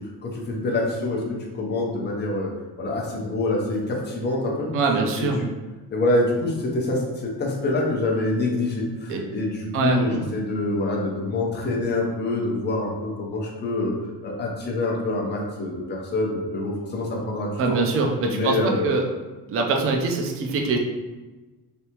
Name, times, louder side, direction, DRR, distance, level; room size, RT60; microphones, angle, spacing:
voice 1, 0.2-1.2 1.5-2.5 2.8-4.7 5.2-5.5 5.9-13.9 14.2-17.8 18.2-18.9, left 2 dB, 25° left, -2 dB, 0.6 m, -26 dB
voice 2, 4.7-5.4 9.1-9.2 9.7-10.2 17.6-19.0 19.5-20.8, right 3 dB, 35° right, 2 dB, 0.4 m, -23 dB
3.4 x 2.7 x 2.9 m, 1.2 s
cardioid pair, 170°, 39 cm